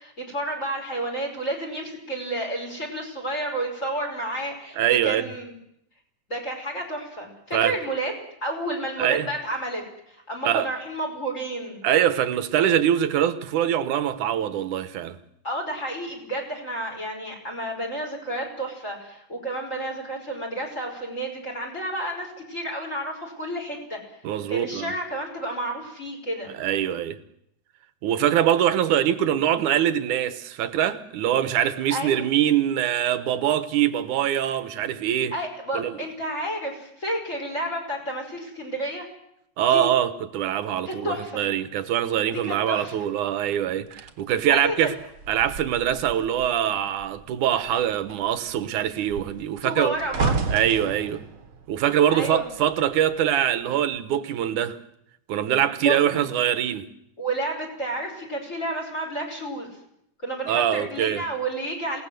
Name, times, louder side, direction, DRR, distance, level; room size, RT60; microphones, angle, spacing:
voice 1, 0.0-5.6 6.3-8.1 8.4-11.8 15.4-24.0 24.5-26.5 31.9-32.2 35.3-39.1 39.7-39.9 40.9-41.4 42.3-42.9 44.5-44.9 49.6-50.4 52.1-52.5 55.7-56.3 57.2-59.7 60.2-62.0, right 1 dB, 20° left, 5.6 m, -31 dB
voice 2, 4.8-5.3 7.5-7.7 9.0-9.3 10.4-10.7 11.8-15.2 24.2-24.9 26.6-27.2 28.0-35.3 35.7-36.0 39.6-44.9 45.3-49.9 50.5-51.2 51.7-54.8 55.3-56.9 60.5-61.2, right 10 dB, 75° right, 2.7 m, -23 dB
sound 1, 43.9-46.6 46.9-47.3 47.6-52.9 53.7-53.9, right 4 dB, 45° right, 2.4 m, -32 dB
28.0 x 18.0 x 7.9 m
omnidirectional pair, 3.6 m